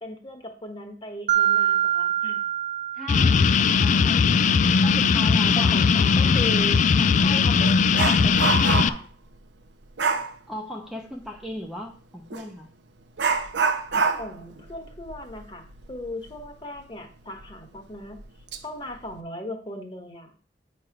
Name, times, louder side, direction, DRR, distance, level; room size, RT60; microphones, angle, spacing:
voice 1, 0.0-2.4 5.5-6.8 7.1-9.0 14.2-18.3 18.6-20.3, left 1 dB, 30° left, 4 dB, 1.3 m, -37 dB
Mallet percussion, 1.3-3.8, right 10 dB, 45° right, 0.5 m, -25 dB
voice 2, 2.9-4.3 4.8-5.7 7.0-7.1 10.5-12.7, equal, ahead, 1 dB, 0.7 m, -37 dB
sound 1, 3.1-8.9, left 5 dB, 45° left, 0.3 m, -19 dB
Dog, 6.6-6.8 7.2-9.1 10.0-10.3 12.3-12.5 13.2-16.5 16.8-16.9 17.4-17.5 18.2-18.6 18.9-19.2, right 5 dB, 85° right, 0.7 m, -27 dB
9.0 x 3.2 x 6.0 m, 0.39 s
head